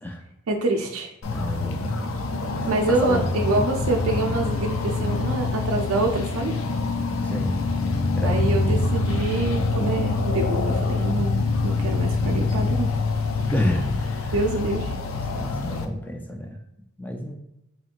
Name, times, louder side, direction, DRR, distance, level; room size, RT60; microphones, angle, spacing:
voice 1, 0.5-1.1 2.6-6.6 8.2-11.4 11.6-12.9 14.3-15.0, right 2 dB, 85° right, 2 dB, 0.5 m, -26 dB
sound 1, 1.2-15.9, left 3 dB, 70° left, 0.4 m, -25 dB
voice 2, 1.3-2.6 3.0-3.2 7.2-7.6 8.2-8.4 13.5-14.4 15.3-16.6 17.0-17.3, left 1 dB, 10° left, 2 dB, 0.4 m, -30 dB
4.4 x 3.0 x 2.5 m, 0.89 s
head